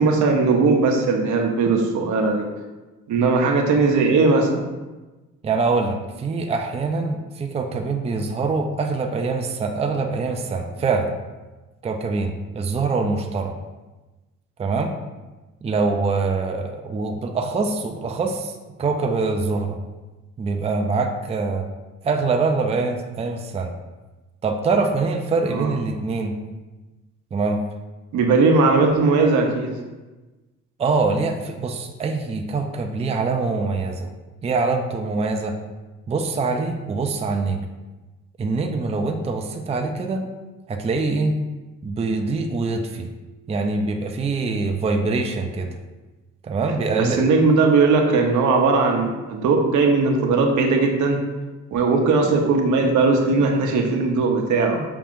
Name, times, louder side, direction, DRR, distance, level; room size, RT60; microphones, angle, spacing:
voice 1, 0.0-2.5 3.1-4.6 25.5-25.7 28.1-29.7 47.0-51.2 51.7-54.8, right 4 dB, 75° right, 2 dB, 0.8 m, -18 dB
voice 2, 5.4-11.1 11.8-13.5 14.6-14.9 15.6-19.8 20.4-21.7 22.0-23.7 24.4-26.3 27.3-27.6 30.8-34.1 34.4-35.5 36.1-37.6 38.4-40.2 40.7-41.3 41.8-43.1 43.5-45.7 46.4-47.3, right 4 dB, 20° right, 4 dB, 0.4 m, -24 dB
5.7 x 2.5 x 3.6 m, 1.2 s
cardioid pair, 90°, 30 cm